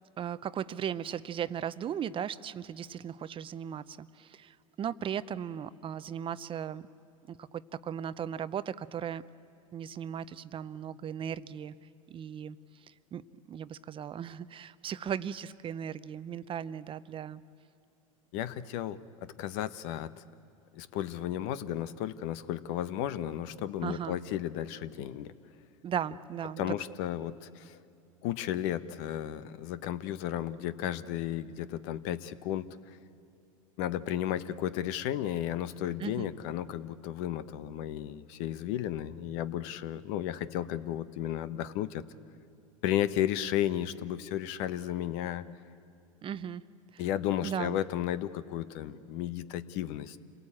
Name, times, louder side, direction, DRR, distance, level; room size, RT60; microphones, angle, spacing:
voice 1, 0.2-6.9 7.3-9.2 9.7-11.7 12.1-12.6 12.9-13.2 13.5-17.4 23.8-24.2 25.8-26.8 36.0-36.3 46.2-46.6 46.9-47.0 47.4-47.8, right 9 dB, 30° right, 15 dB, 0.6 m, -37 dB
voice 2, 18.3-20.2 20.7-25.3 26.6-27.8 28.2-33.0 33.8-42.0 42.8-45.5 47.0-50.2, left 11 dB, 60° left, 15 dB, 1.0 m, -34 dB
28.0 x 18.0 x 8.7 m, 2.7 s
hypercardioid pair, 100°, 18 cm